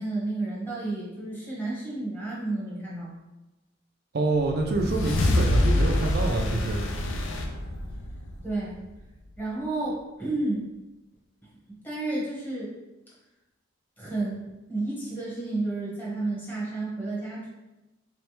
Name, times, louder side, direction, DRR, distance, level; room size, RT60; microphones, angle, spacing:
voice 1, 0.0-3.1 8.4-8.8 9.4-10.7 11.8-12.7 14.0-14.4 14.7-17.5, right 2 dB, 10° left, -7 dB, 1.2 m, -31 dB
voice 2, 4.1-6.8, right 2 dB, 55° right, 1 dB, 0.5 m, -26 dB
sound 1, 4.4-9.0, left 1 dB, 80° left, 0.5 m, -26 dB
3.3 x 3.2 x 3.1 m, 1.0 s
head